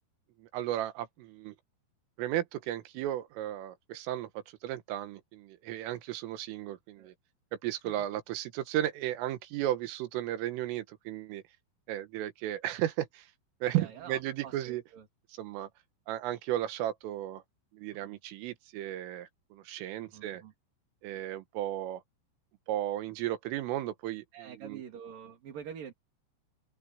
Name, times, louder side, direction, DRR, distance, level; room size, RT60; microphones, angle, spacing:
voice 1, 0.4-1.6 2.2-7.1 7.6-11.4 11.9-13.3 13.6-14.8 15.3-15.7 16.1-17.4 17.7-20.4 21.0-22.0 22.7-24.8, right 13 dB, 85° right, 4.0 m, -34 dB
voice 2, 13.8-15.1 18.0-18.2 20.0-20.5 21.1-21.2 24.3-25.9, right 8 dB, 50° right, 3.8 m, -46 dB
open air
omnidirectional pair, 5.7 m